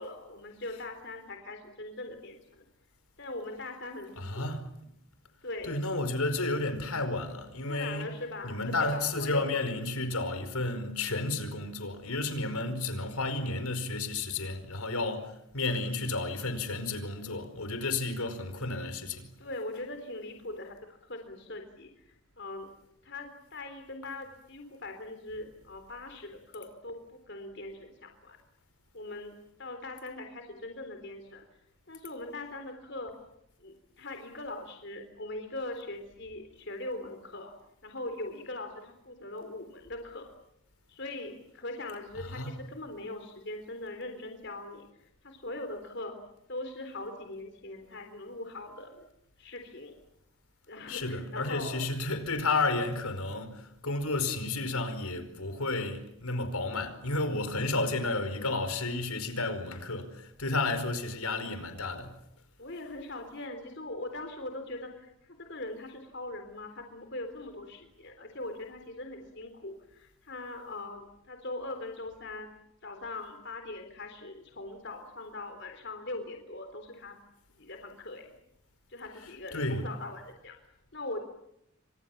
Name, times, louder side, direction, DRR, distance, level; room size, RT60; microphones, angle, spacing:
voice 1, 0.0-2.6 3.2-4.5 5.4-5.7 7.7-9.6 19.4-20.8 21.0-22.7 23.0-28.4 28.9-31.4 31.9-33.1 33.6-37.5 37.8-40.3 40.9-46.1 46.5-49.1 49.4-49.9 50.7-51.8 62.6-72.5 72.8-77.2 77.5-78.3 78.9-80.6 80.9-81.2, left 2 dB, 50° left, 3.8 m, -41 dB
voice 2, 4.2-4.6 5.6-8.1 8.4-19.3 42.2-42.5 50.9-62.1 79.5-79.8, left 2 dB, 80° left, 4.9 m, -32 dB
29.0 x 26.0 x 7.3 m
head